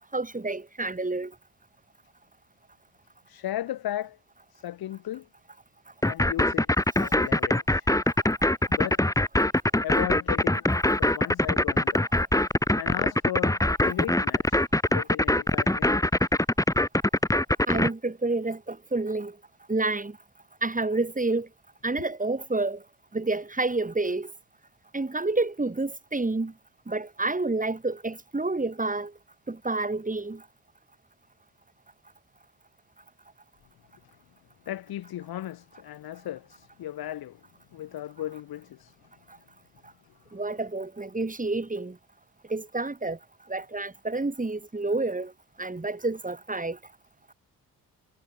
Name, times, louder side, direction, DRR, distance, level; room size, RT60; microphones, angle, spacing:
voice 1, 0.1-1.3 9.4-9.5 17.7-19.4 19.7-20.2 20.6-21.5 21.8-22.8 23.1-24.3 24.9-26.5 26.9-29.1 29.5-30.4 40.3-42.0 42.5-43.2 43.5-45.3 45.6-46.8, right 2 dB, 20° right, 6.8 m, -29 dB
voice 2, 3.3-4.2 4.5-5.3 6.0-6.7 7.0-7.9 8.7-9.0 9.8-12.0 12.8-16.1 34.7-37.4 37.7-38.9, left 13 dB, 80° left, 5.7 m, -36 dB
sound 1, 6.0-17.9, left 1 dB, 10° left, 2.4 m, -23 dB
supercardioid pair, 55°, 36 cm